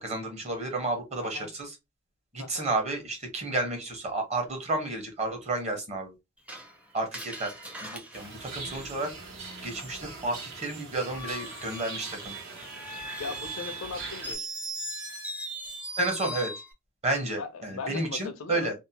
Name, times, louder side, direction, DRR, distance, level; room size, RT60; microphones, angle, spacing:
voice 1, 0.0-1.7 2.3-6.1 6.9-7.5 7.8-9.1 9.6-12.4 16.0-16.5 17.0-18.7, right 2 dB, 35° right, 0.9 m, -31 dB
voice 2, 1.2-1.5 2.4-2.7 13.2-14.5 17.4-18.7, left 5 dB, 75° left, 0.5 m, -38 dB
Screech, 6.5-9.4 11.0-16.7, right 1 dB, 5° right, 0.5 m, -39 dB
sound 1, 8.1-14.4, right 4 dB, 70° right, 0.9 m, -42 dB
2.7 x 2.0 x 2.7 m
head